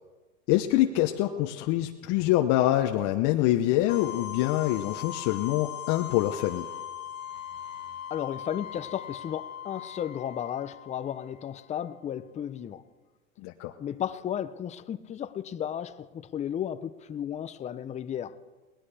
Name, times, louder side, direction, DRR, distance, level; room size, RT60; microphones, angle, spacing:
voice 1, 0.5-6.7 13.4-13.7, left 14 dB, 45° left, 0.8 m, -25 dB
sound 1, 3.9-11.7, left 10 dB, 70° left, 2.0 m, -40 dB
voice 2, 8.1-12.8 13.8-18.4, left 9 dB, 20° left, 0.6 m, -34 dB
21.5 x 18.0 x 3.4 m
hypercardioid pair, 110°, 40 cm